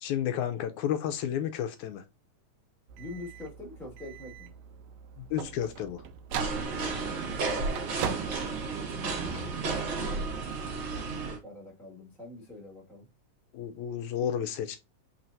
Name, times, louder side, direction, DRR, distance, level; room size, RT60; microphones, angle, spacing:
voice 1, 0.0-2.0 5.2-6.0 13.5-14.8, left 9 dB, 75° left, 1.9 m, -31 dB
sound 1, 2.9-9.4, right 8 dB, 90° right, 1.4 m, -40 dB
voice 2, 3.0-4.5 6.7-7.9 8.9-10.3 10.8-13.1, left 2 dB, ahead, 0.6 m, -45 dB
sound 2, 6.3-11.4, right 4 dB, 55° right, 1.2 m, -32 dB
4.4 x 4.0 x 2.6 m
omnidirectional pair, 3.6 m